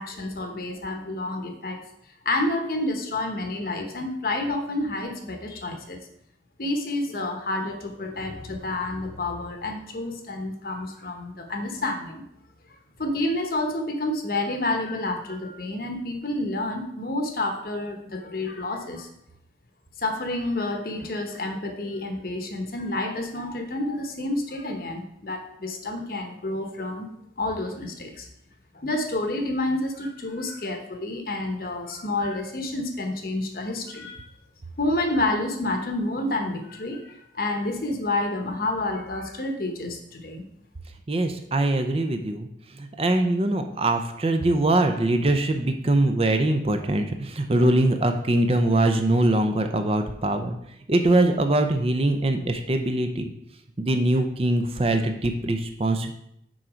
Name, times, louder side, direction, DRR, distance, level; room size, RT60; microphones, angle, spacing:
voice 1, 0.0-1.8 2.2-6.0 6.6-12.2 13.0-19.1 20.0-27.1 27.4-28.3 28.7-34.2 34.8-40.4, left 2 dB, 55° left, 4 dB, 1.0 m, -29 dB
voice 2, 41.1-42.5 42.8-50.6 50.9-53.3 53.8-56.1, right 1 dB, 35° right, 6 dB, 0.5 m, -22 dB
6.3 x 4.5 x 5.0 m, 0.74 s
head